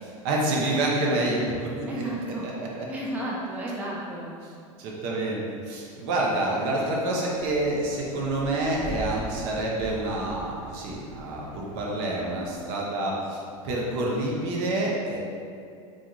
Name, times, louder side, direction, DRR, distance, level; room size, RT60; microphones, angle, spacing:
voice 1, 0.2-2.9 4.8-15.2, right 2 dB, 55° right, -3 dB, 0.6 m, -28 dB
voice 2, 1.9-2.4 2.9-4.3, right 1 dB, 10° right, -5 dB, 0.4 m, -32 dB
sound 1, 7.3-12.7, right 1 dB, 25° right, 0.8 m, -42 dB
2.3 x 2.3 x 2.9 m, 2.4 s
hypercardioid pair, 100°, 18 cm